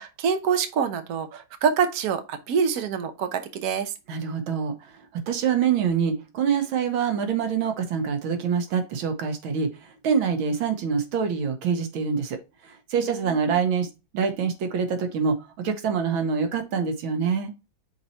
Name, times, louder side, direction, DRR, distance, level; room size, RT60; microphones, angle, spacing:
voice 1, 0.0-3.9 13.1-13.4, right 7 dB, 60° right, 1.2 m, -26 dB
voice 2, 4.1-13.9 14.1-17.7, right 6 dB, 90° right, 1.8 m, -26 dB
5.9 x 4.1 x 4.3 m
omnidirectional pair, 2.2 m